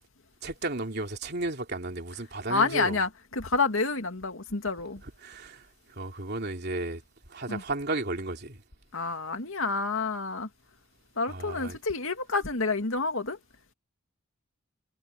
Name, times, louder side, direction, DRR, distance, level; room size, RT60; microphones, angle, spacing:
voice 1, 0.4-3.0 5.2-5.7 6.0-7.0 7.3-8.6 11.3-11.8, right 2 dB, 55° right, 3.1 m, -33 dB
voice 2, 2.5-5.0 7.5-7.6 8.9-10.5 11.2-13.4, left 3 dB, 80° left, 2.4 m, -29 dB
head